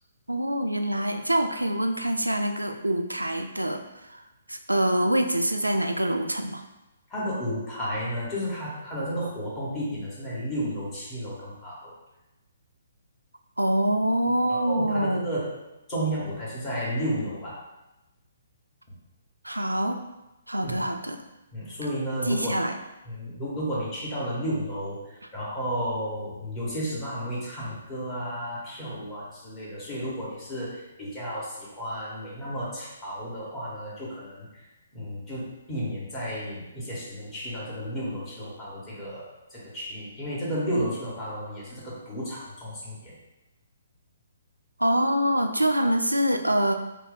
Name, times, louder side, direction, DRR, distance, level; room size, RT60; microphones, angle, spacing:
voice 1, 0.3-4.2 4.5-6.6 13.6-15.2 19.4-20.0 20.5-21.2 22.3-22.8 44.8-46.7, right 1 dB, 85° right, 5 dB, 0.3 m, -25 dB
voice 2, 7.1-11.9 14.5-15.5 15.9-17.6 18.9-19.0 20.6-20.8 21.5-22.5 23.0-34.7 34.9-43.1, equal, 20° left, -8 dB, 1.1 m, -32 dB
2.5 x 2.1 x 3.9 m, 0.98 s
figure-of-eight pair, 130°, 0 cm